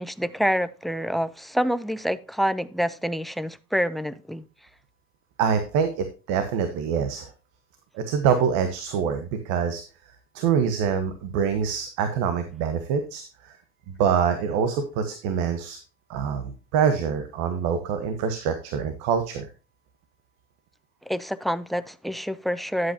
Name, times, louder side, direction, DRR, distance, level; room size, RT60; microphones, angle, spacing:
voice 1, 0.0-4.4 21.1-22.9, equal, ahead, 0.4 m, -27 dB
voice 2, 5.4-7.3 7.9-9.8 10.3-13.6 13.9-15.8 16.1-19.5, right 7 dB, 65° right, 1.2 m, -25 dB
10.0 x 8.0 x 2.7 m
hypercardioid pair, 90°, 32 cm